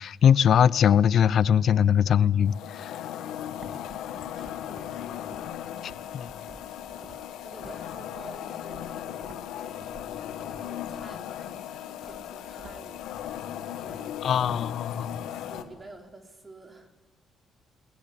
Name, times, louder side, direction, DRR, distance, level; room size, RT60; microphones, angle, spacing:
voice 1, 0.0-3.0 5.8-6.3 14.2-15.2, left 8 dB, 65° left, 0.7 m, -22 dB
sound 1, 2.4-15.6, left 11 dB, 85° left, 1.7 m, -37 dB
sound 2, 3.3-15.9, right 3 dB, 45° right, 2.8 m, -52 dB
voice 2, 4.2-5.3 6.9-9.9 10.4-13.3 13.8-14.3 14.6-16.9, right 2 dB, 25° right, 4.0 m, -50 dB
21.0 x 20.5 x 8.6 m
cardioid pair, 90°, 0 cm